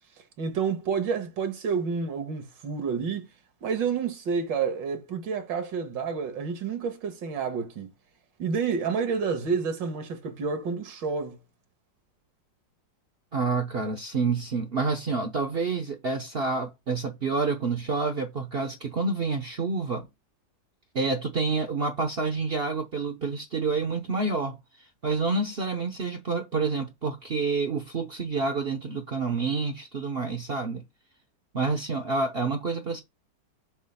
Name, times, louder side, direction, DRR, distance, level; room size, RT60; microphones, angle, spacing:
voice 1, 0.4-3.3 3.6-7.9 8.4-11.4, right 5 dB, 80° right, 1.9 m, -29 dB
voice 2, 13.3-20.1 20.9-24.6 25.0-30.8 31.5-33.0, right 4 dB, 55° right, 0.6 m, -28 dB
7.1 x 2.5 x 5.5 m
omnidirectional pair, 2.0 m